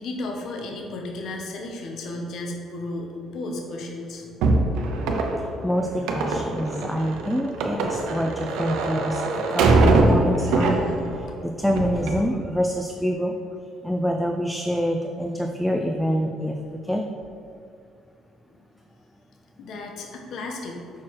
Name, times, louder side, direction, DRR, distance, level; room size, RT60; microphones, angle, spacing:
voice 1, 0.0-4.3 19.6-20.9, left 2 dB, 55° left, 1 dB, 0.8 m, -34 dB
sound 1, 4.4-11.2 11.6-12.2, right 3 dB, 90° right, 0.7 m, -22 dB
voice 2, 5.4-13.3 13.8-16.6 16.8-17.0, equal, ahead, 2 dB, 0.3 m, -26 dB
6.0 x 4.5 x 4.6 m, 2.4 s
cardioid pair, 145°, 0 cm